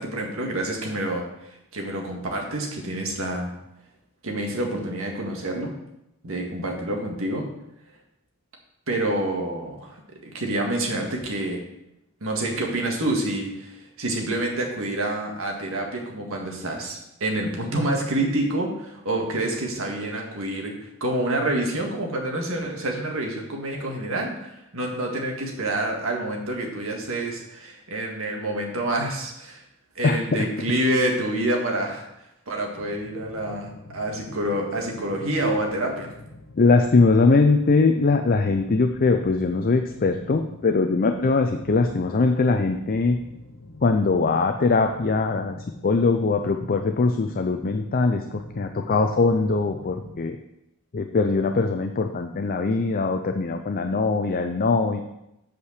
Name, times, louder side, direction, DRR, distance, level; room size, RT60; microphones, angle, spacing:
voice 1, 0.0-3.6 4.2-5.8 6.2-7.5 8.9-11.6 12.2-20.7 21.0-29.6 30.0-32.1 32.5-36.1, right 1 dB, 70° right, 1 dB, 1.8 m, -27 dB
sound 1, 32.8-50.2, left 2 dB, 65° left, 1.0 m, -45 dB
voice 2, 36.6-43.2 43.8-45.6 45.8-50.4 50.9-55.0, left 3 dB, 40° left, 6 dB, 0.5 m, -21 dB
8.4 x 5.0 x 6.5 m, 0.85 s
head